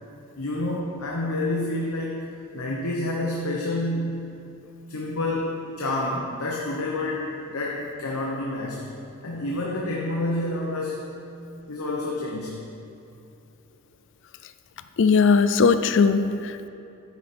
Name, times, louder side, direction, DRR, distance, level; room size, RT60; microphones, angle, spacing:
voice 1, 0.4-2.2 2.5-4.3 4.9-8.9 9.2-11.0 11.7-12.6, left 1 dB, 75° left, -2 dB, 1.1 m, -28 dB
voice 2, 15.0-16.7, left 5 dB, 60° left, 10 dB, 0.4 m, -19 dB
10.0 x 9.5 x 4.3 m, 2.7 s
head